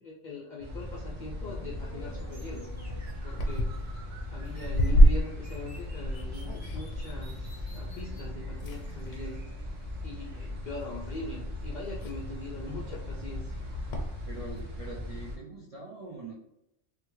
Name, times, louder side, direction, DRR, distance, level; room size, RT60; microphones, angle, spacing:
voice 1, 0.0-2.7 3.2-3.8 4.3-9.4 10.0-13.6, left 2 dB, 60° left, -4 dB, 0.4 m, -42 dB
sound 1, 0.6-15.4, left 1 dB, 90° right, 1.2 m, -39 dB
sound 2, 1.4-8.3 8.6-9.3 10.2-10.6 11.1-11.2 11.4-14.6, equal, 85° left, 1.0 m, -28 dB
sound 3, 2.3-8.3, right 2 dB, 35° right, 1.1 m, -54 dB
voice 2, 14.3-16.3, right 2 dB, 55° right, -4 dB, 0.4 m, -43 dB
3.4 x 2.1 x 3.0 m, 0.84 s
omnidirectional pair, 1.3 m